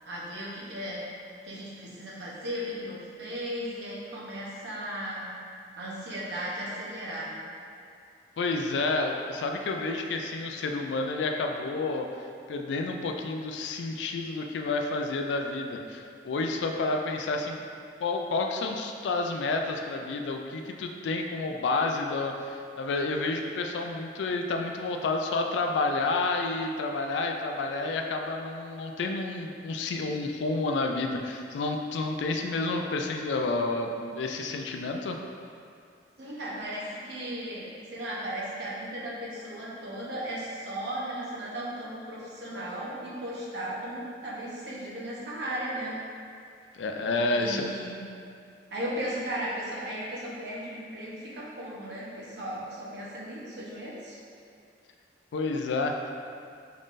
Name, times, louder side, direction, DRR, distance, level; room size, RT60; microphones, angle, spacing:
voice 1, 0.1-1.0 1.4-5.3 5.8-7.3 36.2-46.0 47.3-48.0 48.7-54.2, right 1 dB, 70° right, -6 dB, 0.9 m, -36 dB
voice 2, 8.4-12.1 12.5-17.6 18.0-35.2 46.7-47.7 55.3-56.1, left 3 dB, 85° left, 3 dB, 0.3 m, -30 dB
3.8 x 3.6 x 2.5 m, 2.4 s
head